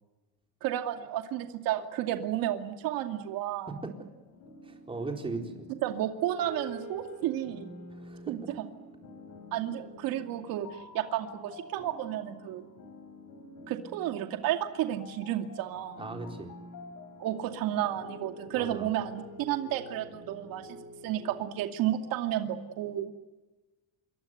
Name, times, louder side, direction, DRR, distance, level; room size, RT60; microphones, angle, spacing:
voice 1, 0.6-3.7 5.8-7.7 8.3-8.4 9.5-12.7 13.7-16.0 17.2-20.8 21.0-23.1, right 12 dB, 80° right, 6 dB, 2.5 m, -32 dB
sound 1, 4.3-21.4, left 2 dB, 60° left, 6.8 m, -48 dB
voice 2, 4.6-5.7 7.9-8.5 16.0-16.5 18.5-18.9, right 3 dB, 15° right, 3 dB, 4.2 m, -38 dB
27.5 x 23.0 x 8.0 m, 1.1 s
cardioid pair, 145°, 34 cm